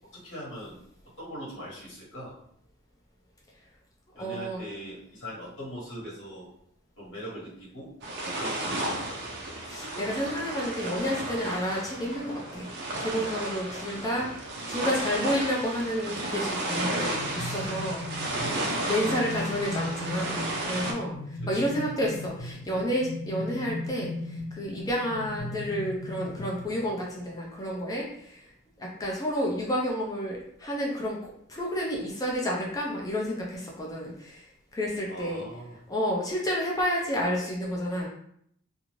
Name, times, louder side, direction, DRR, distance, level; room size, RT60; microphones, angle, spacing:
voice 1, 0.1-0.8 1.2-2.4 4.1-6.5 7.0-7.9 8.2-9.2 13.7-14.4 21.5-21.7 35.1-35.8, equal, 55° left, -6 dB, 1.3 m, -41 dB
voice 2, 4.2-4.6 9.7-12.7 13.0-18.1 18.8-20.3 20.6-21.2 21.5-28.4 28.8-31.2 31.5-34.4 34.7-35.4 35.9-38.1, equal, 15° left, -2 dB, 0.4 m, -30 dB
sound 1, 8.0-20.9, right 1 dB, 55° right, 0.5 m, -33 dB
sound 2, 16.6-27.1, left 2 dB, 85° left, 0.6 m, -38 dB
2.5 x 2.4 x 3.0 m, 0.68 s
head